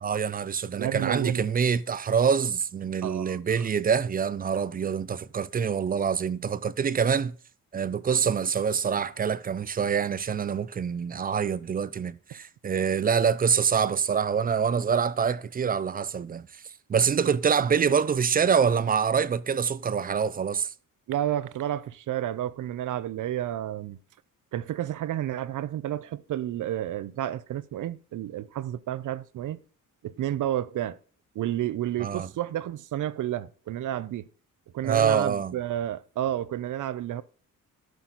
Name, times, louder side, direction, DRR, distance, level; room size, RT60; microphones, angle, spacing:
voice 1, 0.0-7.3 7.7-16.5 16.9-20.7 32.0-32.3 34.8-35.5, right 6 dB, 30° right, 0.4 m, -25 dB
voice 2, 0.8-1.4 3.0-3.7 21.1-24.0 24.5-29.6 30.0-31.0 31.3-34.3 34.7-37.2, right 12 dB, 65° right, 0.6 m, -31 dB
11.5 x 6.2 x 3.9 m
cardioid pair, 150°, 33 cm